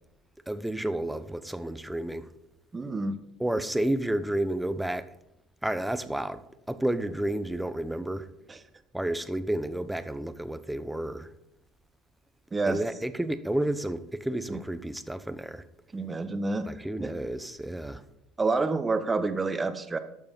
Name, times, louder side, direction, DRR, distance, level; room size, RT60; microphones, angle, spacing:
voice 1, 0.5-2.3 3.4-5.1 5.6-8.3 8.9-11.3 12.7-15.6 16.7-18.0, right 1 dB, 5° right, 0.9 m, -31 dB
voice 2, 2.7-3.2 8.5-8.6 12.5-12.8 14.5-14.6 15.9-16.7 17.0-17.1 18.4-20.0, right 3 dB, 20° right, 1.3 m, -28 dB
12.5 x 6.9 x 5.5 m
hypercardioid pair, 65°, 0 cm